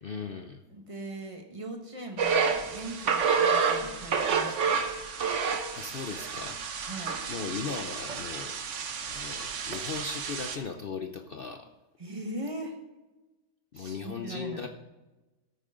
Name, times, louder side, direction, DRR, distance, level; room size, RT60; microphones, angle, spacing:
voice 1, 0.0-0.6 5.7-6.6 7.3-8.5 9.1-11.7 13.7-14.7, left 5 dB, 60° left, 5 dB, 0.5 m, -37 dB
voice 2, 0.7-4.7 6.8-7.2 12.0-12.8 13.7-14.7, right 1 dB, 20° right, 3 dB, 1.5 m, -40 dB
sound 1, 2.2-10.6, right 5 dB, 50° right, 1.1 m, -29 dB
14.0 x 8.7 x 3.8 m, 1.1 s
omnidirectional pair, 1.8 m